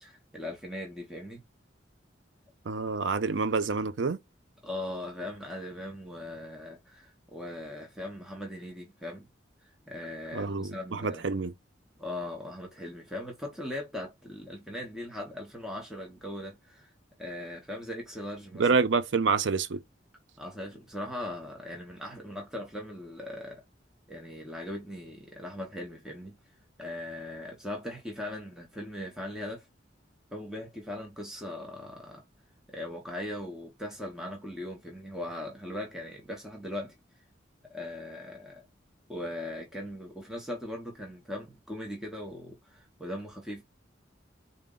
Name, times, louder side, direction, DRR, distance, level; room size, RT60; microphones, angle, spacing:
voice 1, 0.0-1.4 4.6-9.3 9.6-11.3 12.0-16.9 17.2-18.7 20.4-23.6 24.1-26.4 26.8-29.7 30.3-32.2 32.7-37.0 37.7-38.6 39.1-43.6, left 1 dB, 5° right, 0.8 m, -39 dB
voice 2, 2.7-4.2 10.3-11.5 18.6-19.8, right 4 dB, 85° right, 0.6 m, -27 dB
3.9 x 2.1 x 3.8 m
head